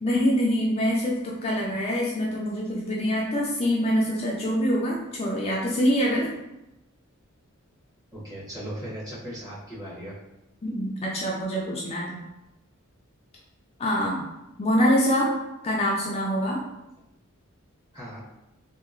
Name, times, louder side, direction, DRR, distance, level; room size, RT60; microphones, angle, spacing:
voice 1, 0.0-6.3 10.6-12.2 13.8-14.3 14.6-15.3 15.6-16.6, equal, 30° left, -4 dB, 0.4 m, -25 dB
voice 2, 8.1-10.2 17.9-18.2, equal, 20° right, -9 dB, 1.1 m, -37 dB
2.8 x 2.5 x 2.5 m, 0.93 s
head